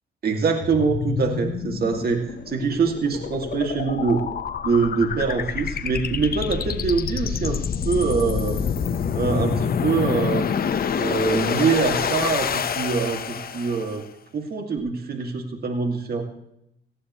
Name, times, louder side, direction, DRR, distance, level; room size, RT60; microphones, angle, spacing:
voice 1, 0.2-4.2 4.6-7.6 7.8-8.6 9.1-10.5 11.0-13.2 13.5-14.1 14.3-16.2, right 5 dB, 50° right, 3 dB, 2.5 m, -24 dB
sound 1, 0.6-14.0, left 7 dB, 50° left, 1.1 m, -27 dB
19.0 x 15.0 x 3.2 m, 0.79 s
cardioid pair, 90°, 20 cm